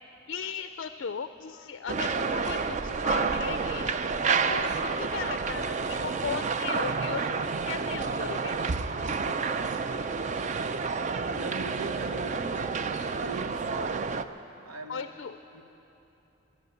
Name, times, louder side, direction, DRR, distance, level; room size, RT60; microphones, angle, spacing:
voice 1, 0.3-3.9 4.4-8.6 14.9-15.4, left 6 dB, 55° left, 10 dB, 0.4 m, -37 dB
sound 1, 1.9-14.2, right 5 dB, 35° right, 0.3 m, -29 dB
voice 2, 11.2-12.8 13.2-14.1 14.6-15.1 15.5-15.6, right 3 dB, 85° right, 4 dB, 1.2 m, -40 dB
13.5 x 9.9 x 9.4 m, 3.0 s
head